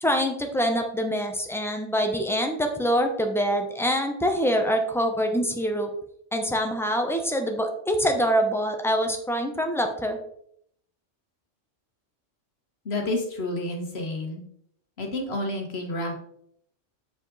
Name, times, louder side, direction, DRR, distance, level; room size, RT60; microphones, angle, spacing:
voice 1, 0.0-5.9 6.3-10.2, equal, ahead, 4 dB, 0.7 m, -25 dB
voice 2, 12.8-14.4 15.0-16.1, left 2 dB, 55° left, 3 dB, 1.7 m, -29 dB
7.3 x 5.2 x 4.1 m, 0.69 s
omnidirectional pair, 1.3 m